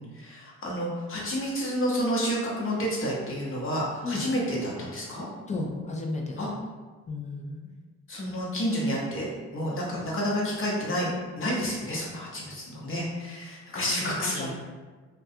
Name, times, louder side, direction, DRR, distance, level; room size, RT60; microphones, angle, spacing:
voice 1, 0.0-5.2 6.4-6.5 8.1-9.3 9.5-11.1 11.4-14.6, equal, 45° left, -5 dB, 0.8 m, -30 dB
voice 2, 5.5-6.4 7.1-7.6 13.7-14.0 14.2-14.6, left 2 dB, 25° left, 0 dB, 0.4 m, -33 dB
2.3 x 2.2 x 2.7 m, 1.4 s
cardioid pair, 90°, 30 cm